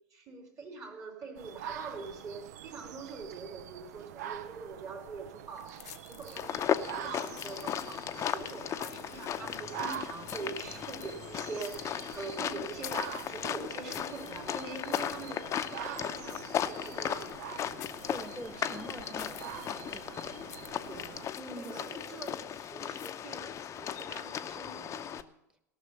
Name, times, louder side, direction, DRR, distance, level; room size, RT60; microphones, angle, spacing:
voice 1, 0.0-17.4 20.9-25.2, right 4 dB, 35° right, 3 dB, 3.2 m, -44 dB
sound 1, 1.4-21.3, right 10 dB, 70° right, 0.6 m, -45 dB
sound 2, 5.5-23.1, left 13 dB, 70° left, 0.8 m, -54 dB
sound 3, 6.4-25.2, left 9 dB, 30° left, 0.6 m, -36 dB
voice 2, 18.0-20.2 21.4-21.9, right 1 dB, 10° right, 9 dB, 1.4 m, -45 dB
17.5 x 6.2 x 7.0 m, 0.85 s
hypercardioid pair, 85°, 9 cm